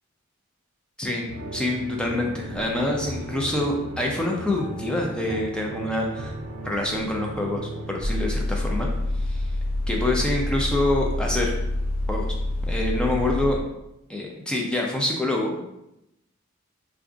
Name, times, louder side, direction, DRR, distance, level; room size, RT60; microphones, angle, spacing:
voice 1, 1.0-6.3 6.6-8.9 9.3-9.5 9.9-11.5 12.1-12.3 12.6-13.6 14.1-15.6, left 1 dB, 5° left, -1 dB, 0.4 m, -26 dB
sound 1, 1.3-8.0, right 1 dB, 80° right, 0.5 m, -35 dB
sound 2, 8.0-13.6, left 1 dB, 90° left, 0.5 m, -27 dB
2.4 x 2.3 x 3.8 m, 0.86 s
head